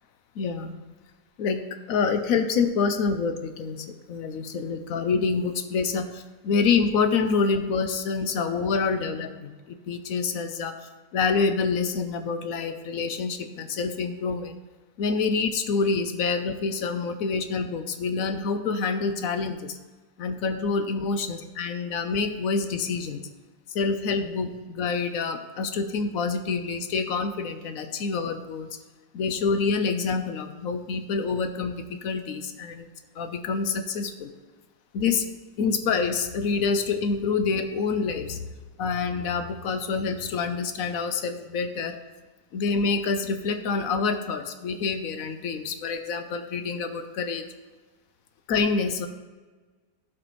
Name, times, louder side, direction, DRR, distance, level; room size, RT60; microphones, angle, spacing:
voice 1, 0.4-0.8 1.4-1.6 1.9-10.7 11.1-14.6 15.0-19.8 20.2-23.2 23.7-28.7 29.1-32.9 33.2-34.3 34.9-35.3 35.6-38.4 38.8-42.0 42.5-47.4 48.5-49.1, left 4 dB, 65° left, 8 dB, 1.0 m, -27 dB
15.0 x 5.0 x 3.1 m, 1.3 s
omnidirectional pair, 1.8 m